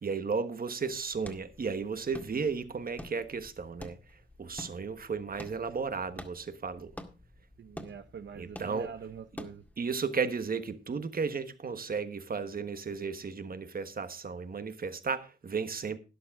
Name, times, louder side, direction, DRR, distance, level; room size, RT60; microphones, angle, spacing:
voice 1, 0.0-4.0 4.4-6.9 8.4-8.9 9.8-16.0, right 5 dB, 55° right, 1.3 m, -34 dB
sound 1, 0.8-9.8, left 1 dB, 10° left, 1.9 m, -49 dB
voice 2, 7.6-9.6, right 7 dB, 85° right, 0.7 m, -44 dB
12.5 x 11.0 x 3.6 m
cardioid pair, 75°, 18 cm